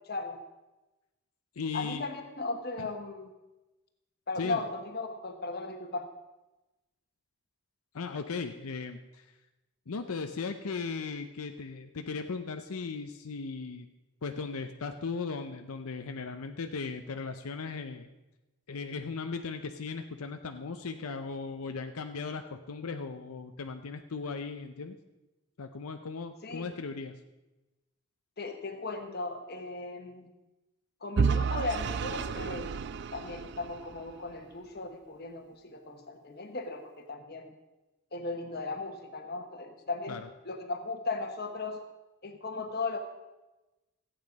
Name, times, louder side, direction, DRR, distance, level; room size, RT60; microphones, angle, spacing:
voice 1, 0.1-0.4 1.7-3.3 4.3-6.1 26.4-26.6 28.4-30.3 31.0-32.8 33.1-37.5 38.1-41.8 42.2-43.0, left 3 dB, 45° left, 5 dB, 1.3 m, -37 dB
voice 2, 1.6-2.1 2.8-2.9 4.4-4.6 7.9-9.3 9.9-13.9 14.2-18.1 18.7-24.9 25.6-27.1 40.1-40.3, left 4 dB, 80° left, 6 dB, 0.6 m, -37 dB
Vehicle / Engine, 31.2-34.2, right 5 dB, 50° right, 0.4 m, -31 dB
14.5 x 8.8 x 5.3 m, 1.1 s
head